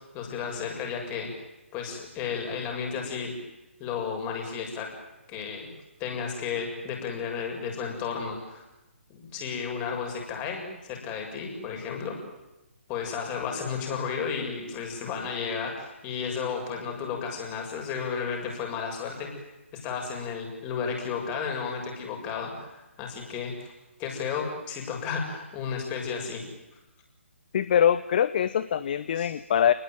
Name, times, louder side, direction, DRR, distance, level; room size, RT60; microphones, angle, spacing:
voice 1, 0.1-1.3 1.7-3.3 3.8-4.9 5.3-5.7 6.0-8.6 9.1-12.2 12.9-19.3 19.7-23.7 24.0-26.4 29.2-29.3, left 6 dB, 20° left, 2 dB, 7.1 m, -33 dB
voice 2, 27.5-29.7, left 9 dB, 40° left, 15 dB, 0.9 m, -23 dB
29.0 x 20.0 x 9.4 m, 0.98 s
figure-of-eight pair, 140°, 7 cm